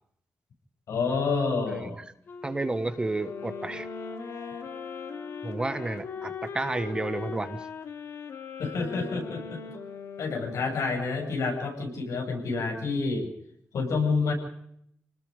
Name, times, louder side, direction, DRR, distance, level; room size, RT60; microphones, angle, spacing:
voice 1, 0.9-2.0 8.6-9.6 10.2-13.3 13.7-14.3, left 4 dB, 90° left, 2 dB, 7.8 m, -28 dB
Wind instrument woodwind instrument, 2.3-7.2, left 3 dB, 45° left, 2.5 m, -44 dB
voice 2, 2.4-3.9 5.4-7.7, right 2 dB, 15° right, 10 dB, 1.3 m, -31 dB
sound 1, 3.2-11.2, left 6 dB, 70° left, 2.6 m, -40 dB
29.0 x 19.5 x 5.2 m, 0.71 s
wide cardioid pair, 165°, 5 cm